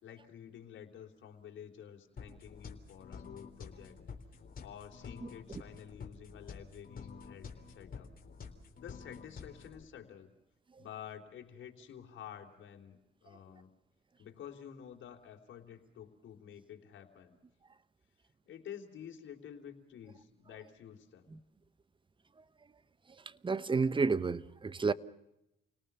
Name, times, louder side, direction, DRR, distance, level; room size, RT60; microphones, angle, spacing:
voice 1, 0.0-4.0 4.6-8.1 8.8-10.3 10.8-13.7 14.2-17.3 18.5-21.3, left 9 dB, 70° left, 3.6 m, -50 dB
sound 1, 2.2-9.8, left 5 dB, 45° left, 3.8 m, -49 dB
voice 2, 23.3-24.9, right 4 dB, 25° right, 1.1 m, -31 dB
29.5 x 18.5 x 6.9 m
cardioid pair, 90°, 20 cm